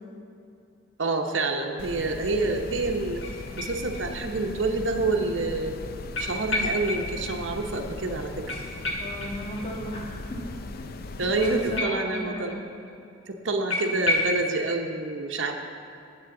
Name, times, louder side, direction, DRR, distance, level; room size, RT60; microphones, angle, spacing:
voice 1, 1.0-3.2 3.6-5.7 6.2-8.6 11.2-12.6 13.3-15.5, right 3 dB, 65° right, 2 dB, 0.9 m, -27 dB
sound 1, 1.8-11.8, left 2 dB, 50° left, 0.5 m, -39 dB
sound 2, 3.2-4.4 4.7-4.8 6.1-7.3 7.6-7.7 8.0-8.1 8.5-10.0 11.4-12.6 12.9-13.0 13.2-13.3 13.7-14.4, left 2 dB, 70° left, 1.4 m, -31 dB
voice 2, 9.0-12.5, equal, 30° left, -2 dB, 1.7 m, -36 dB
17.0 x 7.8 x 3.8 m, 2.7 s
head